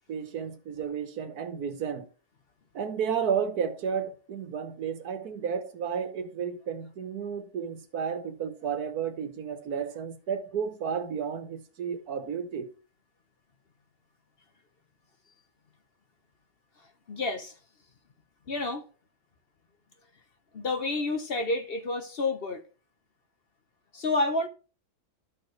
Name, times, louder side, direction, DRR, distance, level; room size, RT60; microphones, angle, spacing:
voice 1, 0.1-2.1 2.7-12.7, right 7 dB, 85° right, 1.6 m, -32 dB
voice 2, 16.8-17.5 18.5-18.8 20.5-22.6 23.9-24.5, left 2 dB, 45° left, 1.0 m, -29 dB
13.0 x 4.5 x 3.2 m
omnidirectional pair, 1.6 m